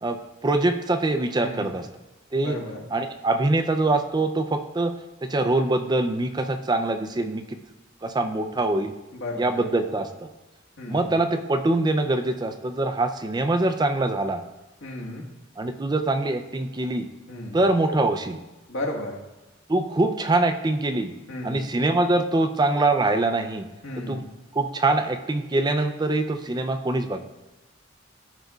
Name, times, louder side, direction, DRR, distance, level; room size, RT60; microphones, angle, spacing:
voice 1, 0.0-1.9 2.3-2.6 2.9-4.9 5.2-7.6 8.0-8.9 9.4-10.3 10.9-14.4 15.6-17.1 17.5-18.4 19.7-21.1 21.4-23.7 24.1-24.2 24.5-27.2, right 2 dB, 20° right, 7 dB, 0.4 m, -24 dB
voice 2, 1.4-1.8 2.4-2.8 9.1-9.6 10.8-11.1 14.8-15.2 17.3-17.6 18.7-19.2 21.3-21.7 23.8-24.3, left 1 dB, 90° left, -1 dB, 1.5 m, -34 dB
13.0 x 5.3 x 2.4 m, 1.1 s
head